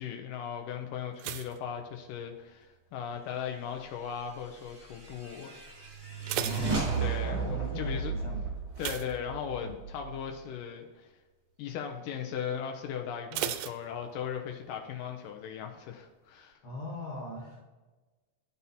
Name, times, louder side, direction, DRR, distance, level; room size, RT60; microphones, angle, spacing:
voice 1, 0.0-6.0 6.3-8.1 8.8-11.1 11.6-16.6, left 8 dB, 85° left, 3 dB, 2.4 m, -38 dB
sound 1, 1.2-2.7 2.9-3.4 4.0-4.4 4.7-4.8 5.2-5.3 5.9-7.5 8.7-9.9 10.2-10.5 10.9-11.0 13.3-14.5 14.8-14.9, right 12 dB, 80° right, 1.8 m, -38 dB
sound 2, 4.6-10.2, right 5 dB, 65° right, 0.6 m, -34 dB
voice 2, 6.4-8.5 9.6-9.7 16.6-17.6, left 1 dB, 40° left, -2 dB, 2.7 m, -39 dB
12.0 x 4.1 x 4.2 m, 1.3 s
omnidirectional pair, 3.9 m